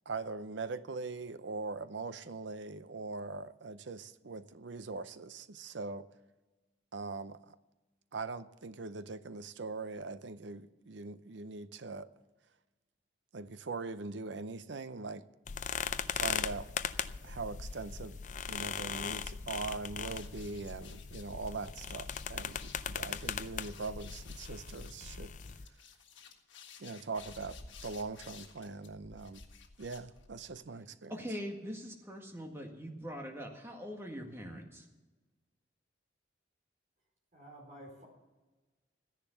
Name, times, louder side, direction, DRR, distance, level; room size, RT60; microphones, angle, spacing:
voice 1, 0.1-6.1 6.9-7.6 8.1-12.1 13.3-15.2 16.1-16.7 17.2-18.2 18.5-25.3 26.8-29.4 29.8-31.1, right 3 dB, 70° right, 0.6 m, -41 dB
sound 1, 15.5-25.7, left 7 dB, 40° left, 0.4 m, -39 dB
sound 2, 20.1-30.6, left 5 dB, 80° left, 1.6 m, -54 dB
voice 2, 31.1-34.9, equal, 15° right, 1.8 m, -42 dB
voice 3, 37.3-38.0, right 1 dB, 40° right, 4.5 m, -51 dB
13.5 x 10.5 x 7.1 m
head